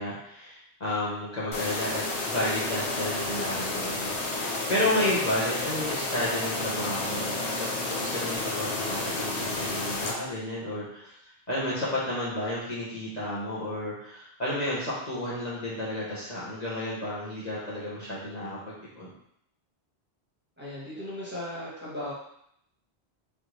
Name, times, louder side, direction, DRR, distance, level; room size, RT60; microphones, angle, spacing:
voice 1, 0.0-11.1 11.5-19.1, left 1 dB, 40° left, -8 dB, 1.2 m, -32 dB
sound 1, 1.5-10.1, left 2 dB, 85° left, 1.1 m, -31 dB
voice 2, 20.6-22.1, left 1 dB, 10° right, -8 dB, 1.2 m, -36 dB
3.7 x 3.4 x 3.1 m, 0.73 s
omnidirectional pair, 1.1 m